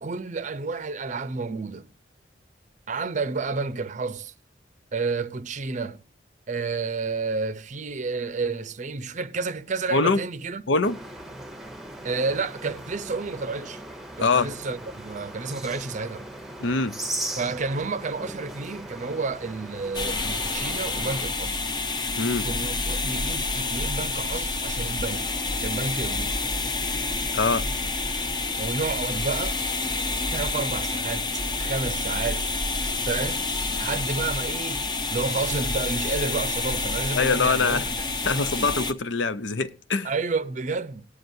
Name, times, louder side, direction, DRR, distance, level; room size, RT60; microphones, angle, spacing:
voice 1, 0.0-1.9 2.9-4.3 4.9-6.0 6.5-10.6 12.0-13.8 14.2-16.2 17.4-21.6 22.4-26.4 28.6-29.6 30.3-32.5 33.1-33.4 33.7-34.9 35.1-38.0 38.2-38.8 40.0-41.1, right 4 dB, 40° right, 0.6 m, -30 dB
voice 2, 9.9-10.2 10.7-11.0 14.2-14.5 16.6-17.0 22.2-22.5 27.3-27.7 37.1-37.9 38.3-40.1, left 4 dB, 80° left, 0.7 m, -23 dB
sound 1, 10.8-21.2, right 1 dB, ahead, 0.9 m, -38 dB
Heavily processed noise, 19.9-38.9, left 3 dB, 25° left, 0.8 m, -28 dB
19.0 x 9.2 x 2.7 m
head